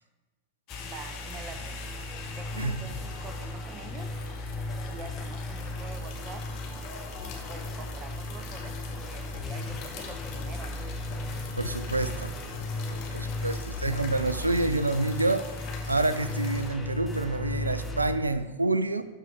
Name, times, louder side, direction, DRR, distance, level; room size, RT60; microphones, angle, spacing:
sound 1, 0.7-16.7, left 6 dB, 45° left, 1.3 m, -44 dB
sound 2, 0.7-18.2, left 2 dB, 15° left, 1.0 m, -36 dB
voice 1, 0.8-1.8 2.3-4.3 4.9-6.5 7.2-11.0, right 5 dB, 30° right, 8 dB, 0.8 m, -46 dB
voice 2, 11.6-12.3 12.8-15.5 15.9-19.0, right 2 dB, 80° right, 13 dB, 0.4 m, -28 dB
12.0 x 4.9 x 3.6 m, 1.2 s
figure-of-eight pair, 90°, 0 cm